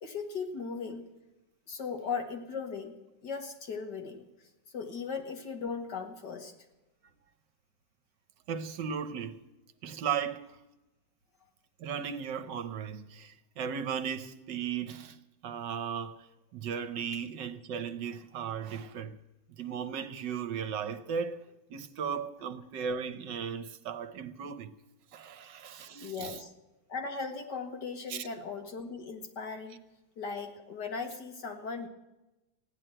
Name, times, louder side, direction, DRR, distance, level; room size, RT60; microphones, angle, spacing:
voice 1, 0.0-1.0 1.7-2.9 3.2-4.2 4.7-6.5 25.9-26.5 26.9-29.8 30.2-31.9, left 5 dB, 60° left, 2.4 m, -38 dB
voice 2, 8.5-9.4 9.8-10.6 11.8-15.2 15.4-16.3 16.5-19.2 19.6-21.4 21.7-24.7 25.1-26.4 28.1-28.3, right 7 dB, 70° right, 1.5 m, -36 dB
15.5 x 10.5 x 7.8 m
omnidirectional pair, 2.1 m